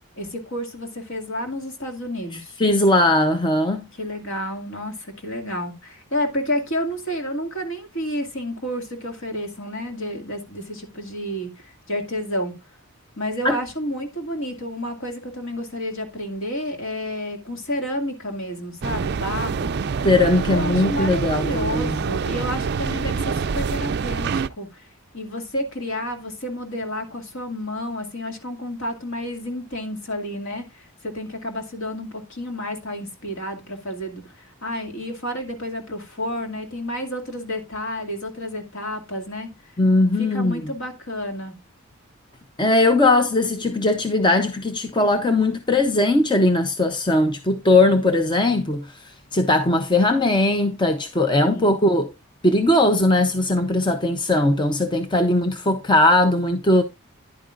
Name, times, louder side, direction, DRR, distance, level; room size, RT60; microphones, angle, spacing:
voice 1, 0.2-2.5 3.9-12.6 13.2-19.7 20.5-24.9 25.1-39.8 40.2-41.6 51.4-51.8, equal, 60° left, 2.2 m, -30 dB
voice 2, 2.6-3.9 13.4-13.6 20.0-22.0 39.8-40.6 42.6-52.1 52.4-56.8, left 2 dB, 20° left, 0.6 m, -19 dB
sound 1, 18.8-24.5, right 5 dB, 45° right, 0.4 m, -26 dB
10.5 x 8.8 x 2.5 m
head